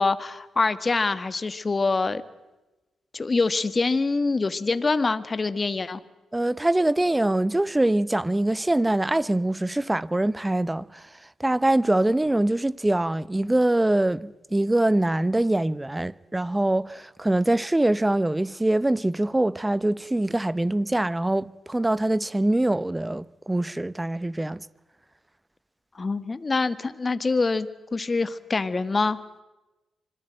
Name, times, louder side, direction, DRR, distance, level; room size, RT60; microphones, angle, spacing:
voice 1, 0.0-2.2 3.1-6.0 25.9-29.2, left 3 dB, 35° left, 1.5 m, -25 dB
voice 2, 6.3-11.1 11.4-24.6, right 1 dB, 15° right, 0.9 m, -23 dB
26.0 x 19.5 x 9.0 m
supercardioid pair, 50°, 0 cm